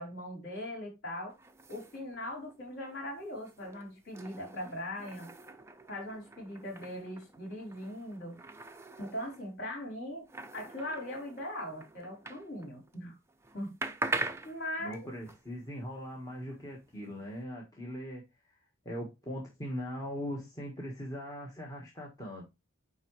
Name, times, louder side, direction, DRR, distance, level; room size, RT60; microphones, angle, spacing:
voice 1, 0.0-1.3 1.7-5.3 5.9-8.4 9.0-10.2 10.5-13.2 13.5-13.8 14.4-15.1, left 1 dB, 50° left, 4.0 m, -40 dB
sound 1, 1.3-13.0 13.3-17.4, right 2 dB, 10° right, 0.6 m, -43 dB
voice 2, 14.8-18.2 18.8-22.4, equal, 15° left, 1.4 m, -40 dB
9.5 x 3.6 x 3.2 m
head